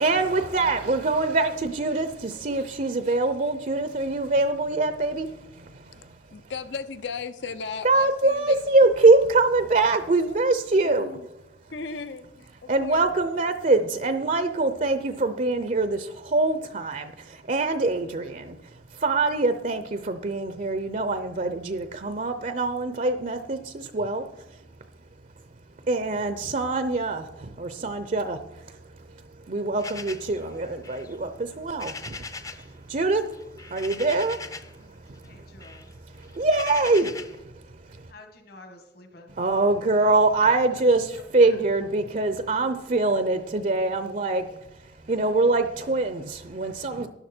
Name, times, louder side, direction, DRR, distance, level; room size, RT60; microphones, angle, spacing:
voice 1, 0.0-6.5 7.8-11.3 12.7-24.7 25.8-38.1 39.3-47.1, right 3 dB, 40° right, 10 dB, 0.6 m, -24 dB
voice 2, 6.3-8.6 10.8-11.2 11.7-13.1, left 5 dB, 70° left, 13 dB, 0.7 m, -36 dB
sound 1, 29.8-32.7 33.0-34.8 35.2-37.4, left 4 dB, 15° left, 0.6 m, -40 dB
voice 3, 35.2-35.9 38.1-39.4, left 2 dB, 55° left, 4 dB, 1.6 m, -49 dB
12.5 x 11.0 x 4.4 m, 0.97 s
head